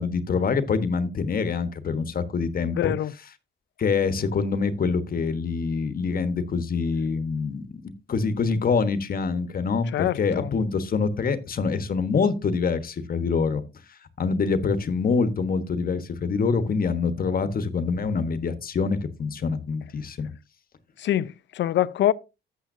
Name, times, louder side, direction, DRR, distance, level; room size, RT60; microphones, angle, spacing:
voice 1, 0.0-2.9 3.8-13.6 14.2-20.3, left 5 dB, 45° left, 1.3 m, -25 dB
voice 2, 2.8-3.1 9.9-10.5 21.0-22.1, left 12 dB, 65° left, 0.6 m, -24 dB
12.5 x 7.9 x 2.7 m
cardioid pair, 90°, 20 cm